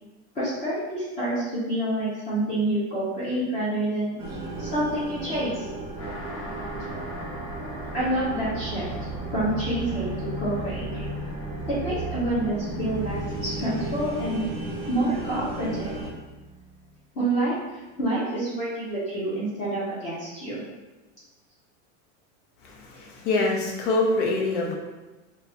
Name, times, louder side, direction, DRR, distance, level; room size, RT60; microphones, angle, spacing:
voice 1, 0.3-4.2 4.6-5.7 7.9-8.9 9.3-11.1 11.7-14.4 14.9-15.9 17.1-17.5 18.0-20.6, right 1 dB, 20° left, -10 dB, 0.5 m, -27 dB
sound 1, 4.2-16.1, right 2 dB, 35° right, 0.5 m, -36 dB
sound 2, 6.0-17.0, right 1 dB, 35° left, 1.0 m, -37 dB
voice 2, 22.6-24.7, left 2 dB, 80° left, 0 dB, 0.8 m, -25 dB
3.1 x 2.3 x 2.6 m, 1.2 s
supercardioid pair, 175°, 36 cm